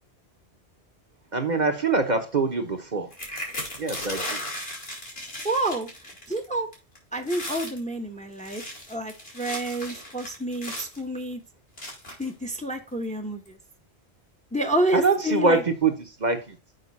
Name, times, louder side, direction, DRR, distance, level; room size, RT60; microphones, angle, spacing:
voice 1, 1.3-3.1 3.8-4.4 14.9-15.9 16.2-16.6, right 4 dB, 45° right, 5 dB, 1.0 m, -24 dB
sound 1, 3.1-6.4 6.7-7.0 7.2-7.8 8.3-11.0 11.8-12.3 13.0-13.1 13.4-13.7, left 1 dB, 65° left, 3.1 m, -36 dB
voice 2, 5.4-5.9 6.3-6.7 7.1-8.6 8.9-11.4 12.2-13.6 14.5-15.6, right 1 dB, 5° left, 6 dB, 0.9 m, -28 dB
6.7 x 5.3 x 4.0 m, 0.30 s
omnidirectional pair, 1.1 m